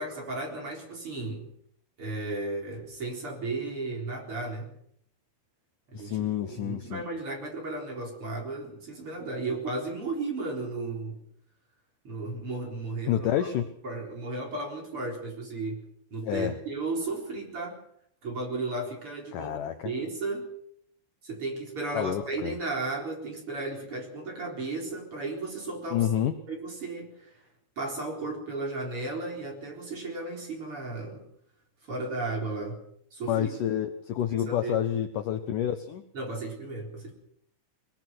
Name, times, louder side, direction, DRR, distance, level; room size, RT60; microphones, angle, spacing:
voice 1, 0.0-1.5 2.0-4.7 5.9-11.2 12.0-13.5 13.8-15.8 16.1-17.8 18.2-20.5 21.2-26.1 26.5-27.4 27.8-31.2 31.8-32.8 33.1-33.5 34.4-34.8 36.1-37.1, right 3 dB, 30° right, 1 dB, 4.5 m, -34 dB
voice 2, 5.9-7.0 13.1-13.6 16.2-16.5 19.3-19.9 21.9-22.5 25.9-26.4 33.3-36.0, left 10 dB, 80° left, 8 dB, 1.9 m, -28 dB
21.5 x 21.0 x 6.2 m, 0.67 s
omnidirectional pair, 5.2 m